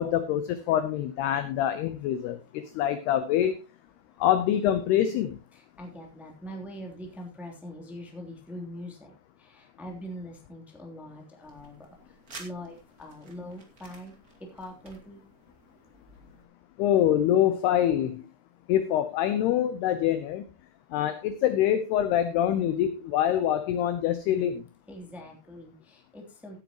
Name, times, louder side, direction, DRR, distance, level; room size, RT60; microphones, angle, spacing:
voice 1, 0.0-3.6 4.2-5.4 16.8-18.2 18.7-20.4 20.9-24.6, left 11 dB, 80° left, 11 dB, 2.3 m, -25 dB
voice 2, 5.5-14.1 14.4-15.2 24.9-26.6, equal, ahead, 1 dB, 1.7 m, -43 dB
sound 1, 11.4-16.4, right 3 dB, 35° right, 1.3 m, -51 dB
16.5 x 9.2 x 3.0 m, 0.26 s
omnidirectional pair, 5.6 m